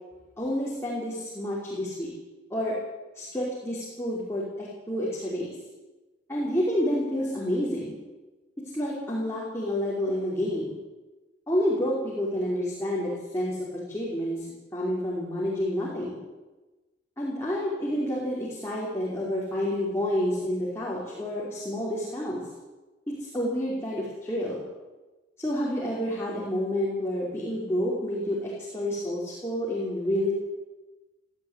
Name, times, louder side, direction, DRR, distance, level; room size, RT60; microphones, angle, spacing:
voice 1, 0.4-2.1 2.5-2.8 3.2-5.6 6.3-7.9 8.7-10.8 11.5-14.5 14.7-16.2 17.2-22.4 23.2-24.6 25.4-30.3, equal, 15° left, -6 dB, 5.3 m, -29 dB
18.5 x 15.0 x 9.9 m, 1.2 s
head